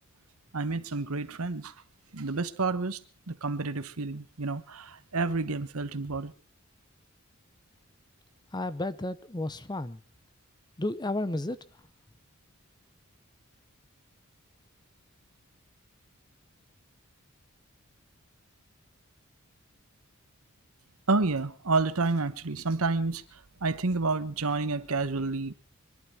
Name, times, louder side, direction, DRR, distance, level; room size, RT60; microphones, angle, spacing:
voice 1, 0.5-1.7 2.1-3.0 3.3-6.3 21.1-23.2 23.6-25.5, right 3 dB, 85° right, 1.1 m, -29 dB
voice 2, 8.5-10.0 10.8-11.8, left 2 dB, 20° left, 0.7 m, -32 dB
25.5 x 11.5 x 4.8 m
head